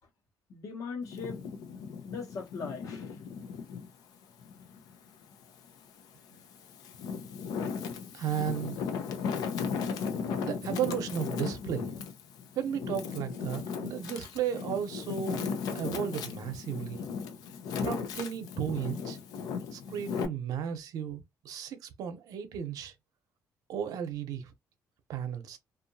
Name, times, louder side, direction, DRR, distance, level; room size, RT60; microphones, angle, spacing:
voice 1, 0.5-1.4 1.9-3.2, left 5 dB, 60° left, 0.9 m, -40 dB
Wind, 1.0-3.9 4.4-5.7 6.3-20.3, left 6 dB, 80° left, 0.5 m, -36 dB
voice 2, 8.1-8.8 10.4-11.9 12.5-17.0 17.8-19.2 19.7-22.9 23.7-24.5 25.1-25.6, right 8 dB, 75° right, 0.7 m, -34 dB
2.7 x 2.4 x 2.7 m
cardioid pair, 135°, 6 cm